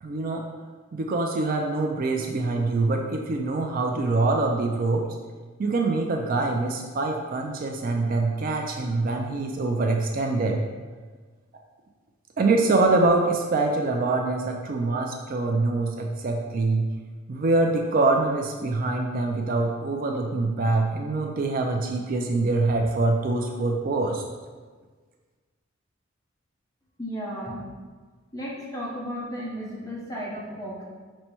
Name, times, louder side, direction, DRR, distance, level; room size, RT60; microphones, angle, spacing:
voice 1, 0.0-0.4 0.9-5.0 5.6-10.6 12.4-16.9 17.3-24.2, right 3 dB, 45° right, 2 dB, 0.3 m, -24 dB
voice 2, 27.0-27.6 28.3-30.8, equal, 15° left, -5 dB, 0.8 m, -34 dB
5.3 x 2.2 x 4.4 m, 1.4 s
head